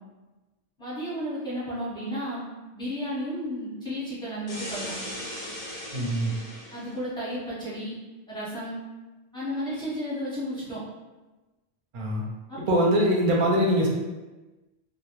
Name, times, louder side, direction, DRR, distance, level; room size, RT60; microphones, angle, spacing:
voice 1, 0.8-2.4 2.7-4.9 6.7-7.9 8.3-8.8 9.3-10.8 12.5-12.6, equal, 5° left, -9 dB, 0.7 m, -33 dB
sound 1, 4.5-6.9, left 1 dB, 45° left, 0.5 m, -37 dB
voice 2, 5.9-6.3 11.9-12.2 12.7-13.9, equal, 55° right, -2 dB, 0.6 m, -22 dB
2.1 x 2.0 x 2.9 m, 1.1 s
omnidirectional pair, 1.1 m